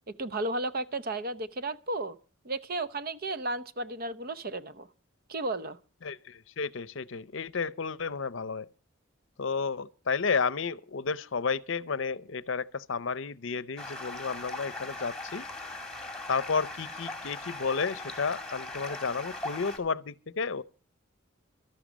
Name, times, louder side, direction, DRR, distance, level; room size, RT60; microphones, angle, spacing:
voice 1, 0.2-2.2 2.4-4.9 5.3-5.8, right 2 dB, 45° right, 0.8 m, -33 dB
voice 2, 6.0-8.7 9.4-15.4 16.3-20.6, left 5 dB, 65° left, 0.6 m, -32 dB
Stream, 13.8-19.8, left 2 dB, 5° left, 2.2 m, -39 dB
13.0 x 11.5 x 6.1 m
head